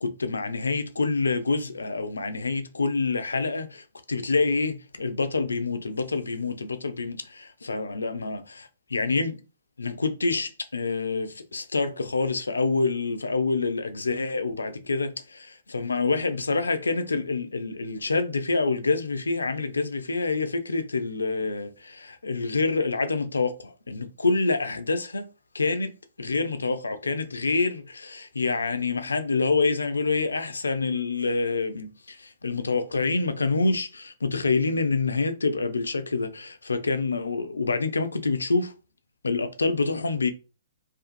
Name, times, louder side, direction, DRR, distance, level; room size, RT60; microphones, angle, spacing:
voice 1, 0.0-8.6 8.9-9.4 9.8-25.3 25.5-38.7 39.2-40.3, left 3 dB, 80° left, 0.4 m, -27 dB
2.5 x 2.4 x 2.4 m
figure-of-eight pair, 120°, 0 cm